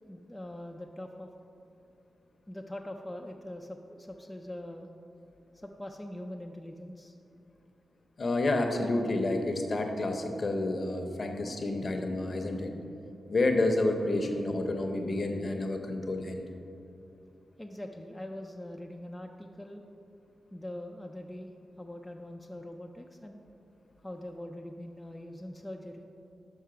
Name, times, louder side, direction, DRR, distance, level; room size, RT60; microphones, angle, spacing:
voice 1, 0.1-1.3 2.5-4.9 5.5-7.2 17.6-19.8 20.5-21.5 21.8-23.4 24.0-26.0, left 1 dB, 5° left, 2 dB, 0.3 m, -42 dB
voice 2, 8.2-12.7 13.3-16.5, left 2 dB, 40° left, 4 dB, 0.6 m, -29 dB
5.6 x 5.5 x 4.9 m, 2.8 s
wide cardioid pair, 110°, 0 cm